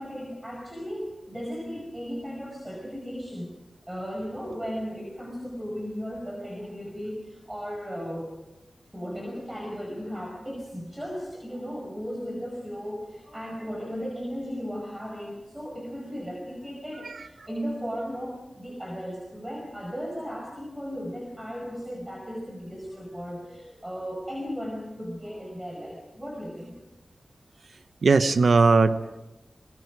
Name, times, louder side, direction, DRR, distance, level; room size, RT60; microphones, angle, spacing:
voice 1, 0.0-3.5 3.9-8.3 8.9-26.8, equal, 15° right, 0 dB, 5.3 m, -36 dB
voice 2, 28.0-29.2, right 4 dB, 75° right, 11 dB, 1.0 m, -19 dB
26.0 x 21.0 x 4.9 m, 1.0 s
wide cardioid pair, 80°, 0 cm